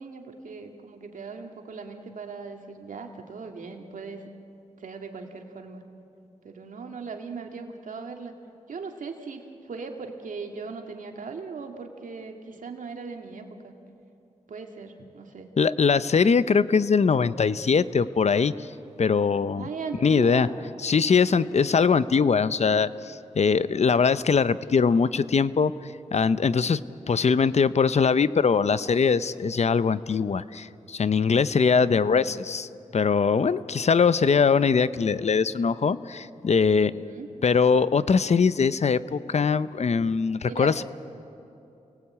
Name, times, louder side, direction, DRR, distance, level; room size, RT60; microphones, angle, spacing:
voice 1, 0.0-4.3 4.8-5.8 6.4-8.4 8.7-13.7 14.5-15.5 19.5-20.6 36.8-37.3 40.4-40.8, right 4 dB, 90° right, 3 dB, 2.1 m, -39 dB
voice 2, 15.6-18.7 19.0-19.7 20.0-20.5 20.8-25.7 26.1-26.8 27.1-37.0 37.4-40.8, left 5 dB, 55° left, 15 dB, 0.7 m, -22 dB
28.5 x 19.0 x 8.5 m, 2.8 s
wide cardioid pair, 75°, 13 cm